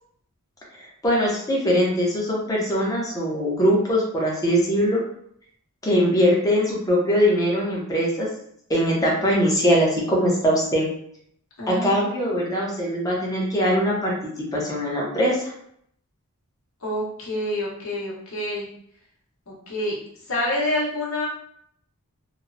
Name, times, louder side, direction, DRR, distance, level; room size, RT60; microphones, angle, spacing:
voice 1, 1.0-5.0 5.8-8.3 8.7-10.9 11.7-15.5, equal, 15° left, -3 dB, 0.7 m, -21 dB
voice 2, 11.6-12.4 16.8-18.7 19.5-20.0 20.3-21.3, left 1 dB, 65° left, -5 dB, 1.0 m, -28 dB
2.9 x 2.1 x 2.5 m, 0.68 s
head